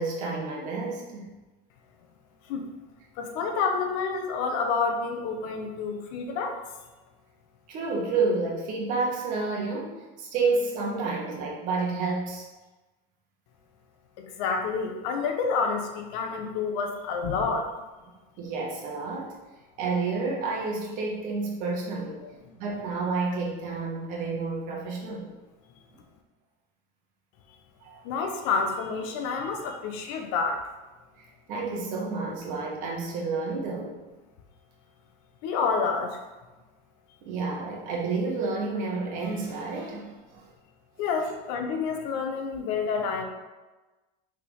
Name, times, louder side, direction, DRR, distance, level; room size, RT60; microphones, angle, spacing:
voice 1, 0.0-1.3 7.7-12.5 18.4-19.4 19.8-22.2 22.6-25.3 27.8-28.0 31.5-34.0 37.2-40.5, right 3 dB, 45° right, -2 dB, 1.5 m, -30 dB
voice 2, 3.2-6.6 14.2-17.7 22.2-22.5 28.0-30.6 35.4-36.2 41.0-43.2, left 5 dB, 65° left, 4 dB, 1.0 m, -28 dB
6.2 x 3.8 x 4.8 m, 1.1 s
cardioid pair, 175°, 19 cm